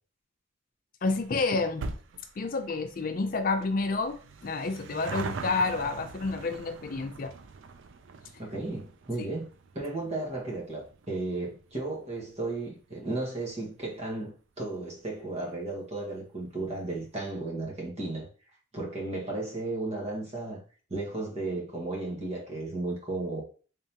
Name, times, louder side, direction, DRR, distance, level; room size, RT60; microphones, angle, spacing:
voice 1, 1.0-1.9 2.4-4.2 4.4-7.3, left 3 dB, 45° left, 0.4 m, -29 dB
sound 1, 1.0-13.8 14.1-14.2 15.1-15.2 15.4-15.5 15.7-15.8, right 4 dB, 80° right, 0.4 m, -43 dB
voice 2, 8.4-9.5 9.7-18.3 18.7-20.6 20.9-23.4, right 2 dB, 35° right, 1.3 m, -34 dB
3.6 x 3.4 x 2.8 m
head